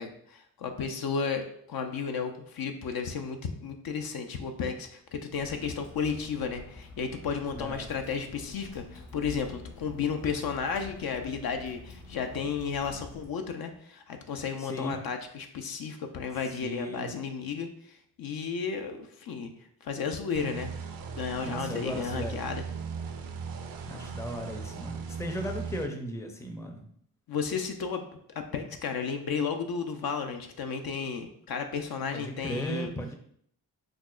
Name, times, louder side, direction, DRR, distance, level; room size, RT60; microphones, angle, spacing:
voice 1, 0.0-19.5 19.8-20.7 21.2-22.6 27.3-28.0 28.4-32.9, left 6 dB, 60° left, 5 dB, 0.6 m, -33 dB
Water / Drip, 5.3-13.2, left 3 dB, 90° left, 1.2 m, -47 dB
voice 2, 7.5-7.9 14.6-15.0 16.6-17.1 21.4-22.4 23.9-26.9 32.1-33.1, equal, 5° left, 5 dB, 0.5 m, -36 dB
sound 1, 20.3-25.9, right 5 dB, 55° right, 0.5 m, -38 dB
6.0 x 2.0 x 2.4 m, 0.66 s
supercardioid pair, 45°, 42 cm